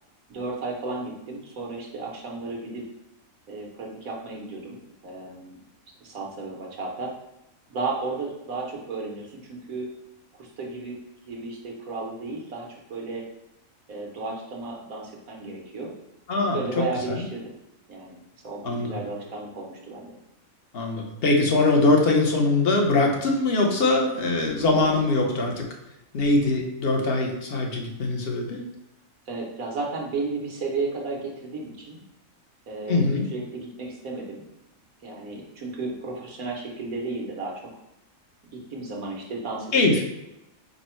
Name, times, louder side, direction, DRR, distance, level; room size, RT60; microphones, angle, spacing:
voice 1, 0.3-2.8 3.5-4.8 5.0-5.6 6.0-7.1 7.7-9.9 10.3-11.0 11.3-13.2 13.9-15.9 16.5-17.5 17.9-20.2 29.3-32.0 32.7-33.1 33.3-34.4 35.0-37.6 38.5-39.7, right 3 dB, 85° right, -1 dB, 1.5 m, -33 dB
voice 2, 16.3-16.6 17.1-17.2 18.6-19.0 20.7-25.7 26.1-28.6 32.9-33.2 39.7-40.0, left 2 dB, 50° left, 1 dB, 1.0 m, -22 dB
5.2 x 2.2 x 4.4 m, 0.88 s
omnidirectional pair, 1.4 m